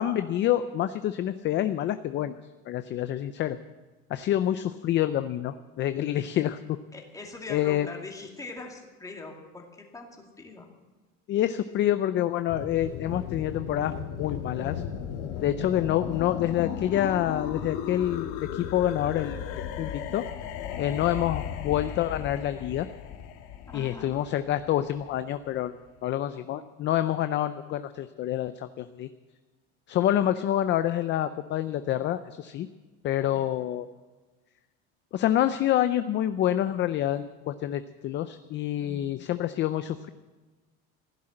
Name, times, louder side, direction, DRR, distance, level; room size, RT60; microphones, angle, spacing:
voice 1, 0.0-2.3 2.7-3.6 4.1-6.8 7.5-7.9 11.3-14.8 15.4-19.4 19.8-20.2 20.8-22.9 23.7-25.7 26.0-29.1 29.9-32.7 33.0-33.9 35.1-40.1, left 12 dB, 35° left, 11 dB, 0.5 m, -27 dB
voice 2, 6.9-10.1 10.4-10.7 23.7-24.2 38.8-39.2, left 3 dB, 10° left, 1 dB, 2.3 m, -42 dB
sound 1, 12.5-25.2, left 8 dB, 85° left, 2.0 m, -36 dB
16.0 x 11.0 x 7.7 m, 1.3 s
cardioid pair, 155°, 32 cm